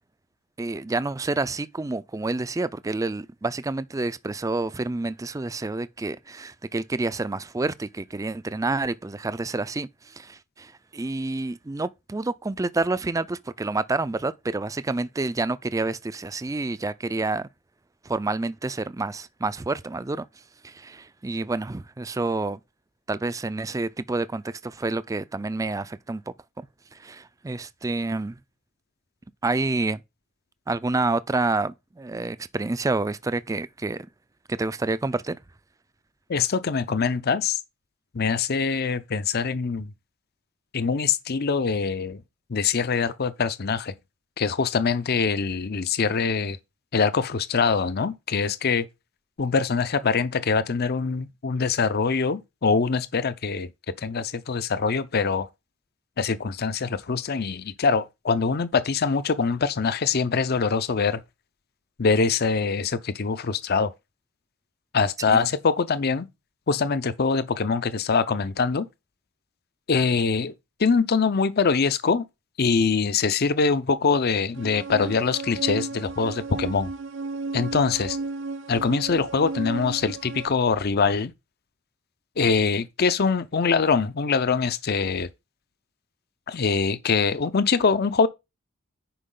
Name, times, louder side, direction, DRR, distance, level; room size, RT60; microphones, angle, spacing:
voice 1, 0.6-17.5 18.0-20.3 20.6-22.6 23.1-26.2 26.6-26.7 26.9-28.4 29.4-30.0 30.7-34.1 34.5-35.4 65.3-65.5, right 3 dB, 15° right, 0.4 m, -28 dB
voice 2, 36.3-37.6 38.1-39.9 40.7-42.2 42.5-43.9 44.4-46.6 46.9-48.9 49.4-53.7 54.0-55.5 56.2-61.2 62.0-63.9 64.9-66.3 66.7-68.9 69.9-70.5 70.8-72.2 72.6-76.9 77.5-78.2 78.7-81.3 82.4-85.3 86.5-88.3, left 5 dB, 50° left, 0.5 m, -23 dB
sound 1, 74.6-80.5, right 3 dB, 65° right, 0.9 m, -34 dB
10.0 x 5.0 x 3.8 m
head